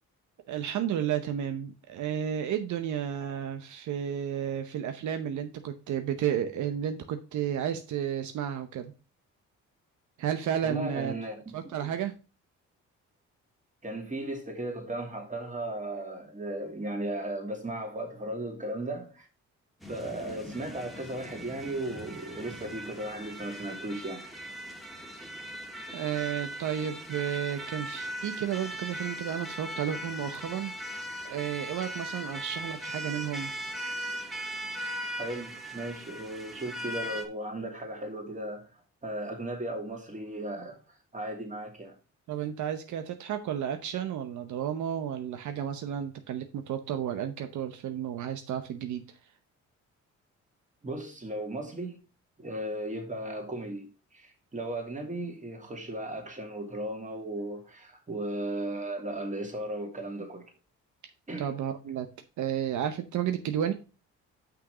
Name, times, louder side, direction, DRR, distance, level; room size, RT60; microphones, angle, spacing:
voice 1, 0.5-8.9 10.2-11.1 11.5-12.1 25.9-33.5 42.3-49.2 61.4-62.1 62.4-63.7, right 9 dB, 75° right, 0.8 m, -32 dB
voice 2, 10.6-11.5 11.8-11.9 13.8-19.3 19.9-24.3 35.2-38.6 39.0-40.8 41.1-42.0 50.8-52.0 52.4-60.4 61.3-61.5, right 1 dB, 25° right, 2.6 m, -36 dB
sound 1, 19.8-37.3, equal, ahead, 1.7 m, -39 dB
6.2 x 5.8 x 4.9 m
cardioid pair, 90°, 30 cm